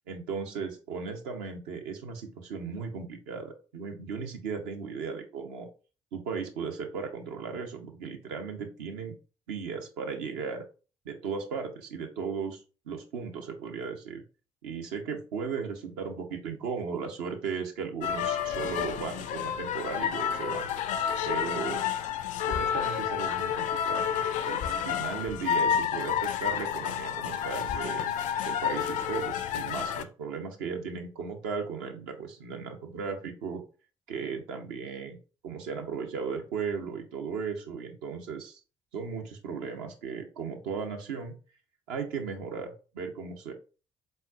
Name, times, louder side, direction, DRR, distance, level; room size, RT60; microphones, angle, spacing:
voice 1, 0.1-5.7 6.1-9.1 9.5-10.6 11.0-14.2 14.6-20.7 21.3-21.8 22.5-24.1 24.5-28.1 28.4-33.6 34.1-35.2 35.4-38.6 38.9-41.4 41.9-43.5, right 5 dB, 75° right, 3 dB, 0.7 m, -36 dB
sound 1, 18.0-30.0, left 8 dB, 55° left, 0.4 m, -30 dB
4.3 x 3.7 x 2.4 m, 0.35 s
figure-of-eight pair, 45°, 15 cm